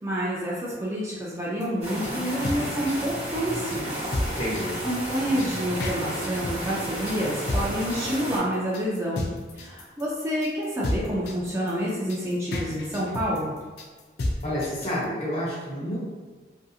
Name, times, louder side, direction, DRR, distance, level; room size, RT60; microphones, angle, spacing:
voice 1, 0.0-4.1 4.8-9.2 9.5-13.5, equal, 15° right, -6 dB, 0.3 m, -28 dB
sound 1, 1.6-15.0, left 1 dB, 65° left, 0.4 m, -32 dB
sound 2, 1.8-8.4, equal, 40° right, 1.0 m, -32 dB
voice 2, 4.2-4.8 14.4-16.0, equal, 35° left, -7 dB, 0.9 m, -29 dB
2.6 x 2.5 x 2.3 m, 1.4 s
head